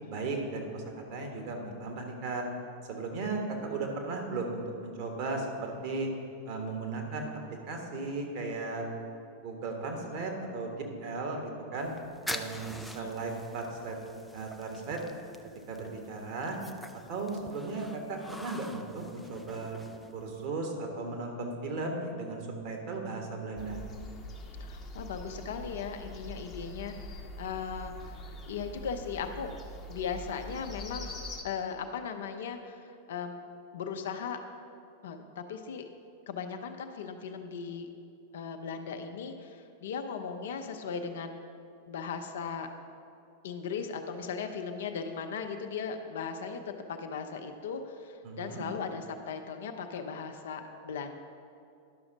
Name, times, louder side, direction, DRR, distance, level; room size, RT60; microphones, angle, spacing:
voice 1, 0.1-0.8 1.1-2.4 2.9-6.1 6.4-8.8 9.4-11.9 12.3-13.9 14.3-15.0 15.7-16.6 17.1-19.8 20.1-23.8 48.2-48.6, right 3 dB, 45° right, 1 dB, 1.4 m, -36 dB
sound 1, 11.8-20.5, left 1 dB, ahead, 0.4 m, -45 dB
sound 2, 23.6-31.4, left 1 dB, 20° left, 0.9 m, -43 dB
voice 2, 24.6-26.9 27.4-29.5 29.9-31.1 31.4-33.4 33.7-34.4 35.0-35.9 36.3-37.9 38.3-41.4 41.9-42.7 43.4-51.1, left 6 dB, 60° left, 6 dB, 0.6 m, -38 dB
11.0 x 5.9 x 3.9 m, 2.5 s
figure-of-eight pair, 90°, 0 cm